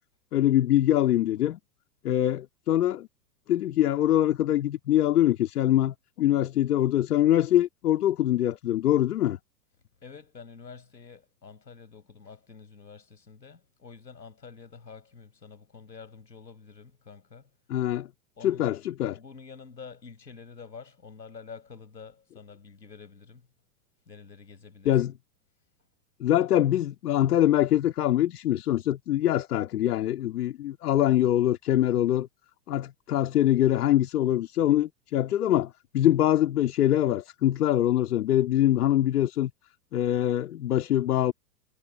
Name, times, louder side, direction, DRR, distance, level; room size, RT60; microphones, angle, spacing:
voice 1, 0.3-1.6 2.0-3.1 3.5-9.4 17.7-18.1 18.4-19.2 24.9-25.1 26.2-32.3 32.7-39.5 39.9-41.3, left 12 dB, 60° left, 2.1 m, -24 dB
voice 2, 10.0-17.5 18.4-18.7 19.1-23.5 24.1-25.1 31.0-31.3, left 5 dB, 80° left, 6.9 m, -48 dB
figure-of-eight pair, 95°, 50 cm